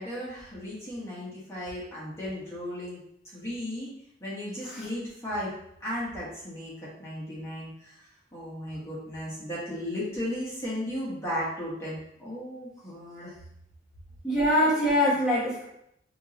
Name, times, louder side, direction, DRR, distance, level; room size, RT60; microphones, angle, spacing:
voice 1, 0.0-3.0 3.3-3.9 4.2-5.5 5.8-8.0 8.3-13.3, left 1 dB, 15° left, -8 dB, 1.4 m, -35 dB
voice 2, 14.2-15.6, equal, 5° right, -10 dB, 1.3 m, -23 dB
4.6 x 3.6 x 3.1 m, 0.76 s
head